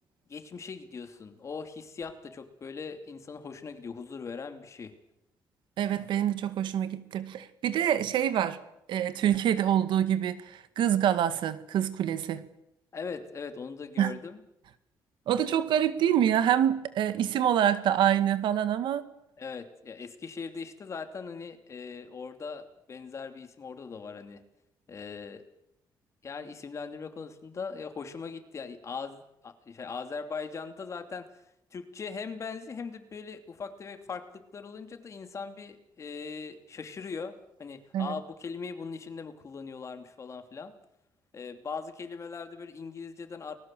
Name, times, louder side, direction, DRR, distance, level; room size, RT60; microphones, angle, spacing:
voice 1, 0.3-4.9 12.9-14.4 19.4-24.4 24.9-25.4 26.2-31.3 31.7-40.7 41.3-43.6, left 5 dB, 40° left, 8 dB, 2.8 m, -40 dB
voice 2, 5.8-8.6 8.9-12.4 14.0-14.1 15.3-19.0 37.9-38.2, right 10 dB, 85° right, 12 dB, 1.9 m, -26 dB
30.0 x 20.5 x 7.7 m, 0.84 s
cardioid pair, 135°, 8 cm